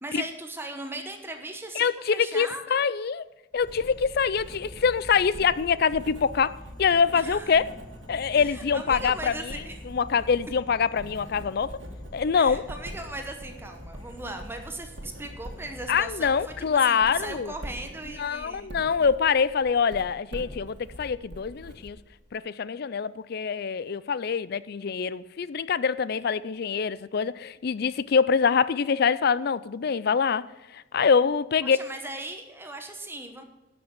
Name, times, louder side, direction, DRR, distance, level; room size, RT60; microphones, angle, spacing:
voice 1, 0.0-2.9 7.1-7.5 8.3-9.8 12.3-16.5 16.8-18.7 31.6-33.4, right 2 dB, 15° right, 0.9 m, -38 dB
voice 2, 1.8-3.2 3.5-7.7 8.1-9.6 9.9-11.8 12.1-12.7 15.9-17.5 18.2-22.0 22.3-30.5 30.7-31.8, left 6 dB, 55° left, 0.4 m, -25 dB
Writing, 3.5-22.4, equal, 70° right, 1.9 m, -44 dB
Insect / Frog, 3.6-16.8, left 1 dB, 20° left, 0.9 m, -47 dB
12.5 x 6.1 x 8.8 m
head